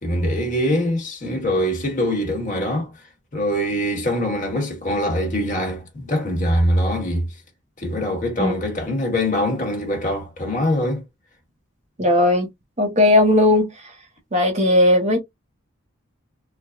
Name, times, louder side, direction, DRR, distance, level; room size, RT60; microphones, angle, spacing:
voice 1, 0.0-2.9 3.3-7.4 7.8-11.0, equal, 40° left, 1.1 m, -23 dB
voice 2, 12.0-12.5 12.8-13.7 14.3-15.2, left 1 dB, 35° right, 0.8 m, -16 dB
3.3 x 2.1 x 2.3 m
head